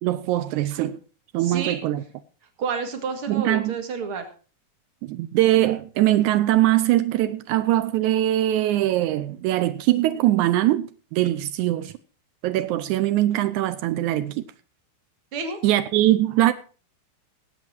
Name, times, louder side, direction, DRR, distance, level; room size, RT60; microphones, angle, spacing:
voice 1, 0.0-1.0 1.3-2.0 3.3-3.8 5.0-11.9 12.4-14.4 15.6-16.5, right 14 dB, 90° right, 1.7 m, -22 dB
voice 2, 1.4-1.8 2.6-4.3 15.3-15.6, right 5 dB, 40° right, 2.3 m, -29 dB
18.5 x 8.5 x 4.5 m
omnidirectional pair, 4.4 m